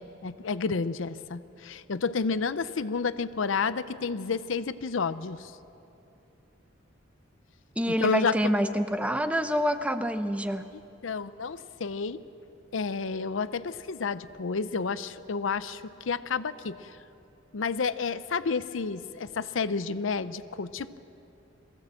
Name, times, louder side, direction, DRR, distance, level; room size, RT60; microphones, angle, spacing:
voice 1, 0.0-5.5 7.9-8.4 10.7-12.2 12.7-16.9 17.5-21.0, left 4 dB, 75° left, 14 dB, 0.6 m, -30 dB
voice 2, 7.8-10.7, equal, 5° right, 10 dB, 0.6 m, -27 dB
22.5 x 16.0 x 7.5 m, 2.8 s
head